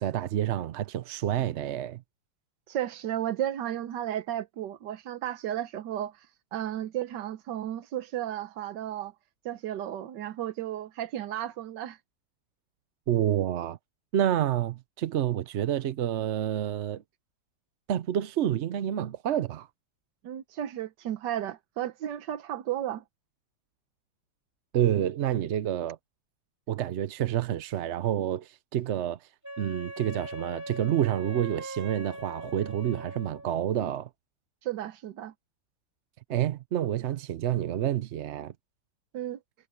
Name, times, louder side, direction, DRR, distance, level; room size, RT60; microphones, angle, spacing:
voice 1, 0.0-2.0 13.1-13.8 14.1-17.0 17.9-19.7 24.7-26.0 26.7-29.2 29.6-34.1 36.3-38.5, right 11 dB, 60° right, 0.7 m, -28 dB
voice 2, 2.7-9.1 9.4-12.0 20.2-23.0 34.6-35.3 39.1-39.4, right 11 dB, 90° right, 1.5 m, -34 dB
Wind instrument woodwind instrument, 29.4-33.5, right 1 dB, 10° right, 3.0 m, -40 dB
omnidirectional pair, 1.8 m